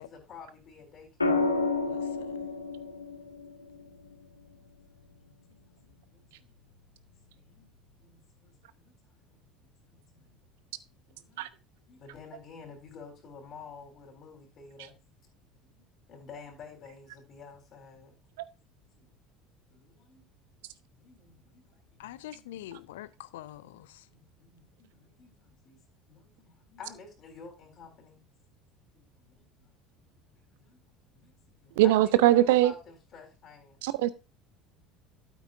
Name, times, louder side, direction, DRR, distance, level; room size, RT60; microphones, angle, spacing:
voice 1, 0.0-1.4 3.8-4.1 4.5-6.6 7.3-7.7 8.0-10.4 11.1-11.5 11.9-15.0 15.6-15.7 16.1-18.2 19.0-19.1 19.7-20.2 21.0-23.0 23.6-23.7 24.0-25.8 26.1-28.2 28.9-29.7 30.3-30.8 31.1-33.8, left 5 dB, 45° left, 3.7 m, -51 dB
sound 1, 1.2-5.3 7.0-7.4, left 3 dB, 90° left, 1.4 m, -32 dB
voice 2, 1.9-2.4 22.0-24.1, left 14 dB, 70° left, 0.6 m, -45 dB
voice 3, 31.8-32.7 33.8-34.1, right 14 dB, 65° right, 0.8 m, -21 dB
12.5 x 8.4 x 2.6 m
figure-of-eight pair, 65°, 0 cm